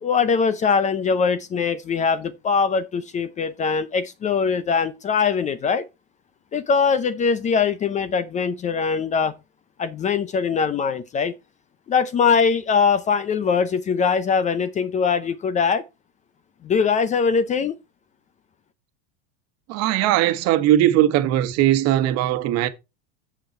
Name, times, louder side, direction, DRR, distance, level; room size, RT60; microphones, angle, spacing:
voice 1, 0.0-5.8 6.5-9.3 9.8-11.3 11.9-15.8 16.6-17.8, left 5 dB, 20° left, 0.5 m, -22 dB
voice 2, 19.7-22.7, right 13 dB, 50° right, 1.3 m, -19 dB
8.1 x 7.2 x 4.3 m
supercardioid pair, 130°, 34 cm